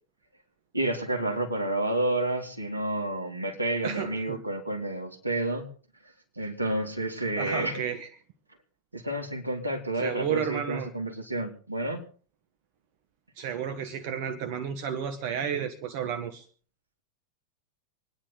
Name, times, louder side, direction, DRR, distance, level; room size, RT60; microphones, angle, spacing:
voice 1, 0.7-5.7 6.0-7.8 8.9-12.0, right 1 dB, 85° right, 2 dB, 2.6 m, -30 dB
voice 2, 3.8-4.4 7.4-8.1 10.0-10.9 13.4-16.5, right 8 dB, 45° right, 8 dB, 1.2 m, -32 dB
25.5 x 10.0 x 4.0 m, 0.41 s
figure-of-eight pair, 90°, 0 cm